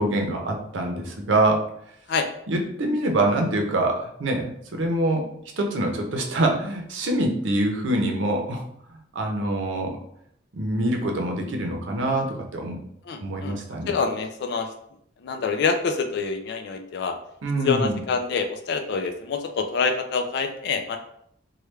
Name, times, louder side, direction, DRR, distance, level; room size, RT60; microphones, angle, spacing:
voice 1, 0.0-1.7 2.5-5.2 5.6-8.6 9.1-9.9 10.5-12.8 13.2-13.9 17.4-18.0, right 1 dB, 80° right, 2 dB, 0.6 m, -25 dB
voice 2, 13.1-13.6 13.9-14.7 15.2-17.2 17.6-21.0, left 5 dB, 60° left, 5 dB, 0.3 m, -26 dB
3.2 x 2.2 x 3.3 m, 0.71 s
head